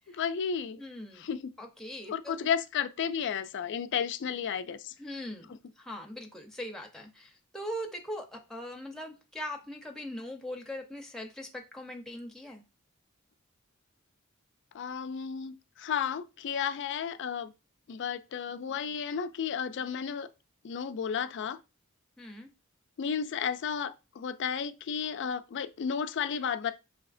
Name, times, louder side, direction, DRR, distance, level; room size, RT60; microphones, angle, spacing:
voice 1, 0.1-0.8 1.2-1.5 2.1-4.9 14.7-17.5 17.9-20.3 20.6-21.6 23.0-26.7, left 7 dB, 55° left, 0.4 m, -33 dB
voice 2, 0.8-1.2 1.6-2.5 5.0-12.6 22.2-22.5, equal, ahead, 0.6 m, -41 dB
5.6 x 2.8 x 2.5 m
head